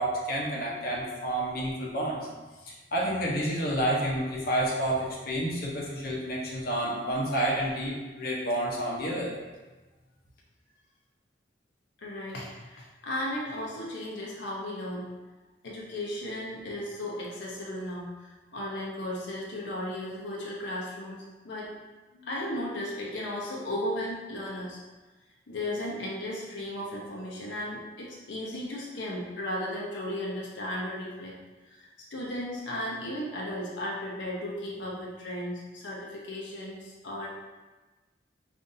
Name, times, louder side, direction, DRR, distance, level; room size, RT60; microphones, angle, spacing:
voice 1, 0.0-2.2 2.6-9.4, right 1 dB, 55° left, -4 dB, 0.8 m, -29 dB
voice 2, 12.0-15.1 15.6-21.7 22.1-24.8 25.5-31.4 31.6-37.3, left 1 dB, 85° left, -4 dB, 0.8 m, -35 dB
5.1 x 2.6 x 2.7 m, 1.2 s
head